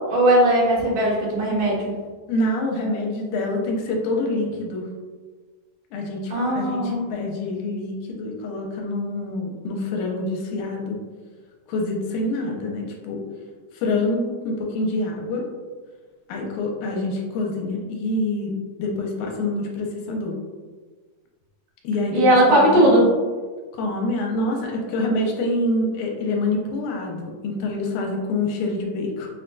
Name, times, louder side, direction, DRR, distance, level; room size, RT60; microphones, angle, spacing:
voice 1, 0.1-1.9 6.3-7.0 22.1-23.1, right 1 dB, 85° right, -5 dB, 2.7 m, -18 dB
voice 2, 2.3-4.9 5.9-11.0 11.7-13.2 13.7-15.5 16.3-20.3 21.8-23.0 23.7-29.3, left 2 dB, 80° left, 0 dB, 2.0 m, -26 dB
5.7 x 2.6 x 2.2 m, 1.4 s
omnidirectional pair, 3.6 m